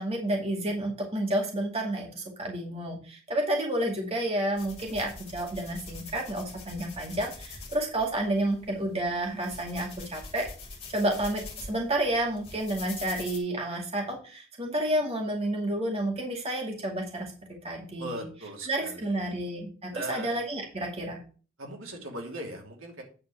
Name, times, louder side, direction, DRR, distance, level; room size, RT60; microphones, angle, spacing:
voice 1, 0.0-10.5 10.9-17.3 17.6-18.3 18.7-21.2, right 1 dB, 30° right, 0 dB, 2.3 m, -30 dB
sound 1, 4.6-13.4, left 3 dB, 30° left, 2.5 m, -45 dB
voice 2, 18.0-19.3 19.9-20.4 21.6-23.0, right 1 dB, 85° right, 0 dB, 2.9 m, -39 dB
9.4 x 4.4 x 6.4 m, 0.38 s
head